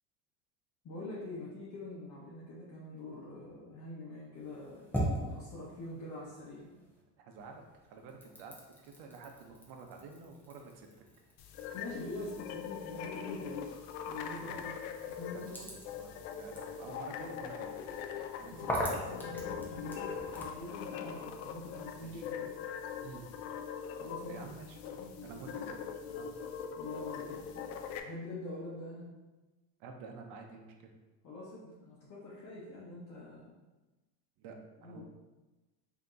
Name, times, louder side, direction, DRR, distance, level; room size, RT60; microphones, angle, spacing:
voice 1, 0.8-4.8 5.3-6.7 11.7-13.8 14.1-14.8 15.1-15.8 18.5-22.5 24.0-24.4 25.0-25.5 26.8-27.7 28.0-29.1 31.2-33.6 34.8-35.0, left 2 dB, 40° left, -7 dB, 1.0 m, -45 dB
sound 1, 4.3-7.0 7.3-20.6, equal, 5° left, 0.6 m, -43 dB
voice 2, 7.2-7.6 7.9-10.9 14.5-14.6 15.3-15.6 16.0-17.7 18.4-19.9 22.0-22.2 23.0-23.3 24.3-25.8 26.1-26.3 29.8-30.9 34.4-35.0, right 4 dB, 65° right, 3 dB, 0.8 m, -50 dB
sound 2, 11.4-28.0, left 7 dB, 80° left, 0.6 m, -42 dB
3.4 x 2.9 x 3.8 m, 1.1 s
cardioid pair, 140°, 43 cm